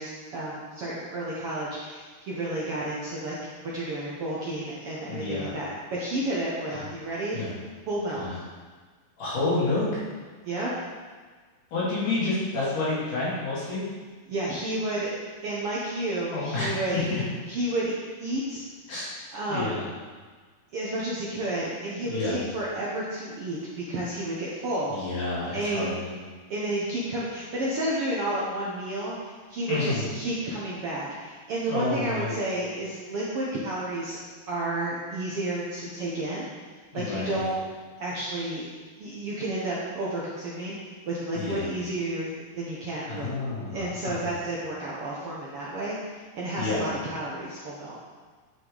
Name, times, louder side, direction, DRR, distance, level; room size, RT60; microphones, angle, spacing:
voice 1, 0.0-3.4 3.7-7.4 7.9-8.4 10.4-10.7 14.3-15.1 15.4-16.9 17.5-17.9 18.2-18.6 19.3-19.8 20.7-25.0 25.5-25.9 26.5-34.2 34.5-36.5 36.9-37.6 38.0-38.7 39.0-40.8 41.1-42.3 42.6-43.3 43.7-48.0, right 1 dB, 60° right, -6 dB, 1.6 m, -31 dB
voice 2, 5.0-5.5 6.7-6.8 7.3-7.5 8.2-8.3 9.2-9.9 11.7-13.8 16.3-17.2 18.9-19.1 19.5-19.8 22.0-22.4 24.9-26.1 29.7-30.1 31.7-32.4 36.9-37.4 41.3-41.6 43.1-44.3 46.6-46.9, left 3 dB, 70° left, -9 dB, 4.5 m, -29 dB
10.0 x 5.9 x 4.0 m, 1.5 s
omnidirectional pair, 3.9 m